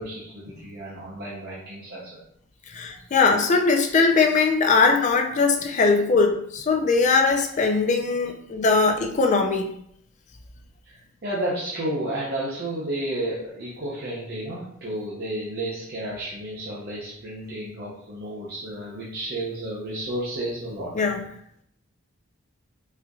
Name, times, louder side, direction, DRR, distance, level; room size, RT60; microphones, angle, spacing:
voice 1, 0.0-2.2 2.9-3.0 10.8-21.1, right 1 dB, 50° right, -7 dB, 0.7 m, -32 dB
voice 2, 2.7-9.7 20.9-21.2, left 4 dB, 35° left, 4 dB, 0.4 m, -20 dB
4.3 x 2.5 x 2.3 m, 0.70 s
head